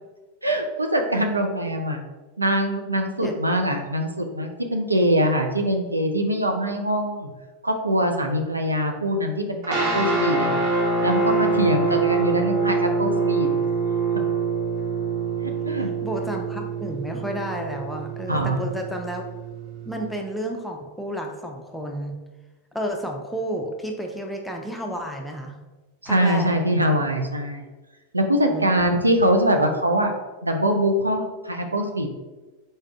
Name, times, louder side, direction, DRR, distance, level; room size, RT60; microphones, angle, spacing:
voice 1, 0.4-2.0 2.4-7.3 7.6-10.5 11.0-13.5 15.6-15.9 18.3-18.7 26.0-27.6 28.1-30.1 30.4-32.1, equal, 80° right, 4 dB, 0.5 m, -23 dB
sound 1, 9.6-20.1, right 4 dB, 40° right, 1.3 m, -25 dB
voice 2, 16.0-19.2 19.9-22.2 22.7-25.5 26.1-26.5 28.5-28.7, equal, ahead, 1 dB, 0.6 m, -31 dB
4.1 x 3.7 x 3.4 m, 1.2 s
figure-of-eight pair, 90°, 0 cm